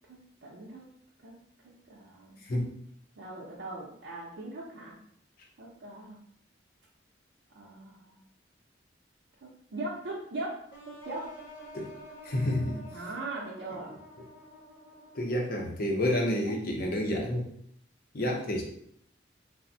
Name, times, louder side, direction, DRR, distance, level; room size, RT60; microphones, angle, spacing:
voice 1, 0.1-0.9 1.2-1.4 1.6-2.4 3.2-5.0 5.6-6.2 7.5-8.2 9.4-11.3 12.9-13.9 16.5-16.6, right 2 dB, 90° right, -5 dB, 0.5 m, -40 dB
sound 1, 10.7-15.6, equal, 90° left, 1.0 m, -49 dB
voice 2, 12.2-12.8 15.2-17.5 18.1-18.6, left 1 dB, 50° left, 1 dB, 0.5 m, -29 dB
3.3 x 2.0 x 2.6 m, 0.67 s
head